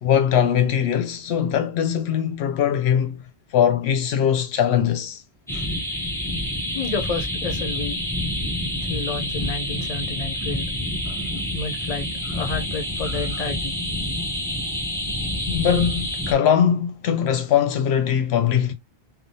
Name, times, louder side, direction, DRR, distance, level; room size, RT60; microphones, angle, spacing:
voice 1, 0.0-3.2 3.5-5.2 5.5-5.7 11.1-11.2 15.5-18.7, left 9 dB, 80° left, 0.8 m, -21 dB
sound 1, 5.5-16.3, left 1 dB, 5° left, 0.5 m, -28 dB
voice 2, 6.7-8.0 8.9-10.7 11.5-13.8, left 4 dB, 45° left, 0.7 m, -30 dB
3.3 x 2.1 x 2.6 m
omnidirectional pair, 1.1 m